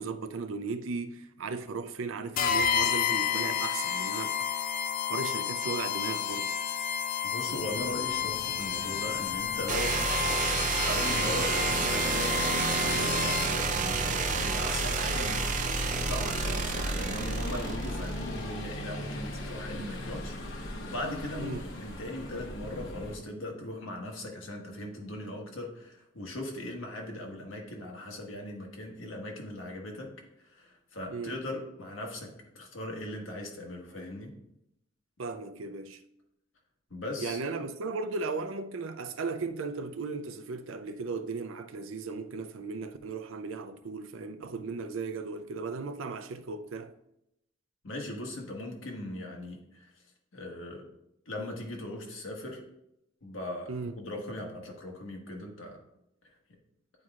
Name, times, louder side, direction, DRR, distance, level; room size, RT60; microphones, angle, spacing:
voice 1, 0.0-4.5 4.8-6.6 21.4-21.6 31.1-31.3 35.2-36.0 37.2-46.9 53.7-54.0, right 4 dB, 90° right, 0.5 m, -36 dB
sound 1, 2.4-13.7, left 8 dB, 45° left, 0.4 m, -31 dB
voice 2, 7.2-12.4 12.7-15.4 15.9-30.1 30.4-34.3 36.9-37.4 47.8-49.9 50.3-50.8 51.3-52.6 53.2-53.7 54.0-55.8, left 1 dB, 85° left, 1.4 m, -39 dB
sound 2, 7.5-23.2, equal, 70° left, 1.0 m, -40 dB
sound 3, 9.7-18.4, right 4 dB, 40° right, 0.6 m, -30 dB
9.6 x 4.6 x 2.4 m
head